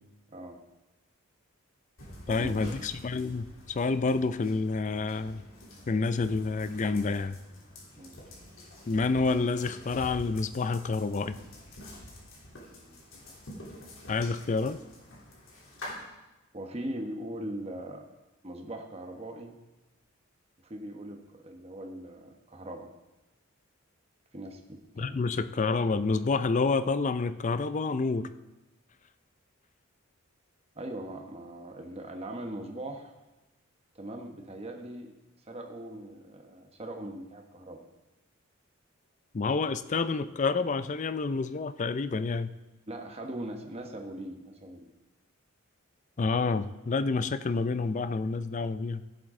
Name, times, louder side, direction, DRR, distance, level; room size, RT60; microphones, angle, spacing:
voice 1, 0.3-0.6 2.3-2.9 8.0-8.2 12.8-13.0 16.5-18.1 18.4-19.6 20.6-22.9 24.3-25.4 30.7-33.1 33.9-35.1 35.5-37.8 42.9-44.9, right 1 dB, 30° right, 3 dB, 1.1 m, -40 dB
sound 1, 2.0-15.9, left 1 dB, 70° left, 3.2 m, -47 dB
voice 2, 2.3-5.4 5.9-7.4 8.9-11.4 14.1-14.8 25.0-28.3 39.3-42.5 46.2-49.0, left 4 dB, 35° left, 13 dB, 0.4 m, -28 dB
16.0 x 7.8 x 3.7 m, 1.0 s
head